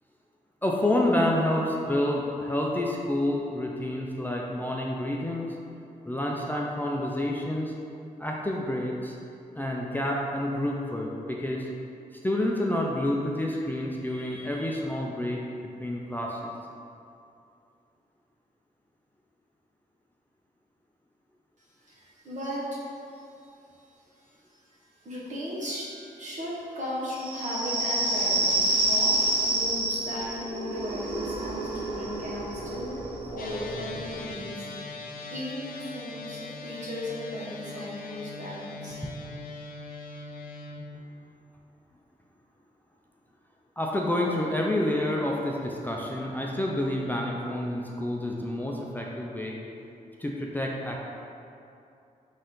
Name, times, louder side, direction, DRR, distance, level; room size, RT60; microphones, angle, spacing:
voice 1, 0.6-5.5 6.1-7.7 8.2-9.2 9.5-11.7 12.2-16.5 43.8-49.6 50.2-51.0, left 1 dB, 10° left, -2 dB, 0.4 m, -28 dB
voice 2, 21.6-23.8 24.1-33.0 33.3-35.0 35.3-39.0, equal, 50° right, -7 dB, 1.3 m, -37 dB
sound 1, 27.2-34.4, right 2 dB, 30° right, 1.1 m, -28 dB
sound 2, 33.4-40.8, left 3 dB, 65° left, 0.5 m, -40 dB
4.2 x 2.6 x 3.8 m, 2.7 s
cardioid pair, 55°, 16 cm